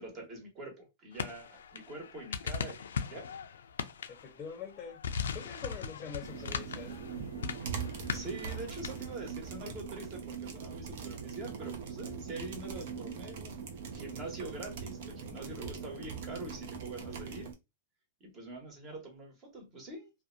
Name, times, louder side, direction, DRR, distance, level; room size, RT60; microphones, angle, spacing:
voice 1, 0.0-3.3 6.0-6.2 6.5-6.6 8.1-13.6 13.9-17.5 18.2-20.1, right 2 dB, 35° right, 1.3 m, -44 dB
sound 1, 1.1-9.1, left 6 dB, 85° left, 0.3 m, -39 dB
voice 2, 4.1-5.0 5.3-6.9, left 7 dB, 30° left, 0.6 m, -44 dB
sound 2, 6.2-17.5, right 6 dB, 65° right, 0.6 m, -41 dB
2.5 x 2.2 x 2.5 m
hypercardioid pair, 125°, 0 cm